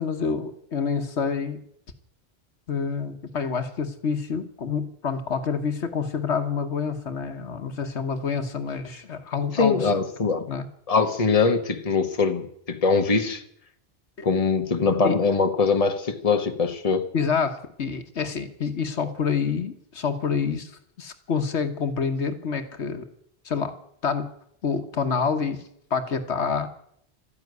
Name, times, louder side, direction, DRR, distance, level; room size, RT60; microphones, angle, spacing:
voice 1, 0.0-1.6 2.7-9.9 10.5-10.7 14.2-14.3 15.0-15.2 17.1-20.7 21.0-23.1 23.5-23.8 24.0-24.3 24.6-25.6 25.9-26.7, left 5 dB, 80° left, 8 dB, 1.6 m, -27 dB
voice 2, 9.5-10.5 10.9-13.4 14.2-17.0, left 4 dB, 35° left, 6 dB, 1.3 m, -22 dB
13.5 x 10.5 x 9.4 m, 0.68 s
omnidirectional pair, 1.1 m